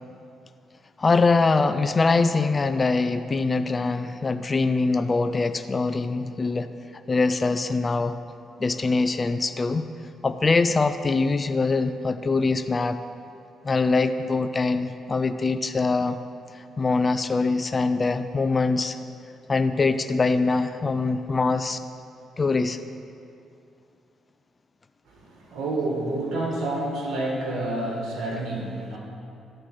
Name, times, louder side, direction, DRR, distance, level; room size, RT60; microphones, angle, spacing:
voice 1, 1.0-8.2 8.6-9.9 10.2-13.0 13.6-16.2 16.5-19.0 19.5-21.8 22.4-22.8, left 3 dB, 30° left, 10 dB, 0.4 m, -23 dB
voice 2, 25.1-29.0, right 2 dB, 80° right, -1 dB, 2.0 m, -29 dB
13.0 x 4.4 x 6.3 m, 2.6 s
cardioid pair, 90°, 0 cm